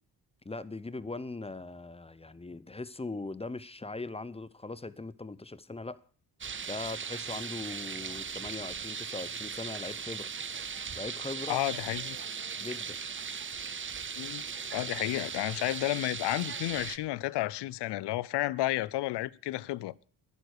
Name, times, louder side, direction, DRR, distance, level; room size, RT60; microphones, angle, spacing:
voice 1, 0.4-6.0 6.7-10.3 11.0-11.6 12.6-13.0, left 3 dB, 15° left, 0.7 m, -40 dB
sound 1, 6.4-17.0, right 6 dB, 30° right, 0.7 m, -38 dB
voice 2, 11.5-12.2 14.2-14.4 14.7-19.9, left 16 dB, 80° left, 0.6 m, -32 dB
11.0 x 10.0 x 6.5 m
cardioid pair, 65°, 40 cm